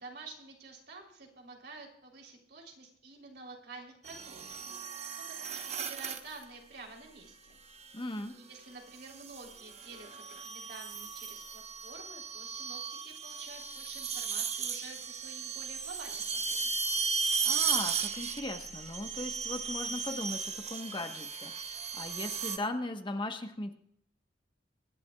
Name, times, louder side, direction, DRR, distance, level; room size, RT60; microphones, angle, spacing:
voice 1, 0.0-4.6 5.1-7.6 8.3-16.7, right 3 dB, 65° right, 0 dB, 3.4 m, -50 dB
sound 1, 4.0-6.4 7.8-8.2 9.0-22.6, right 6 dB, 40° right, 1.0 m, -36 dB
voice 2, 7.9-8.4 17.4-23.7, left 2 dB, 30° left, 6 dB, 1.1 m, -38 dB
24.0 x 11.5 x 2.3 m, 0.72 s
head